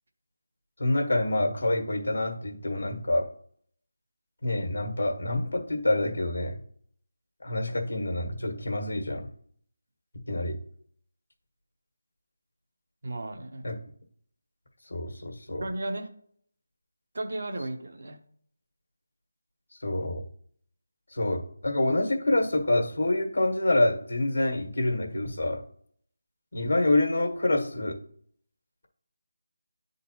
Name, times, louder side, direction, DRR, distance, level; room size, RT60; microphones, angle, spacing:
voice 1, 0.8-3.3 4.4-6.6 7.4-9.3 10.3-10.6 13.6-13.8 14.9-15.6 19.8-20.2 21.1-25.6 26.5-28.0, left 1 dB, 85° left, 3 dB, 1.4 m, -27 dB
voice 2, 13.0-13.6 15.6-16.1 17.1-18.2, right 1 dB, 65° right, 6 dB, 0.9 m, -34 dB
10.0 x 3.8 x 2.9 m, 0.62 s
figure-of-eight pair, 165°, 0 cm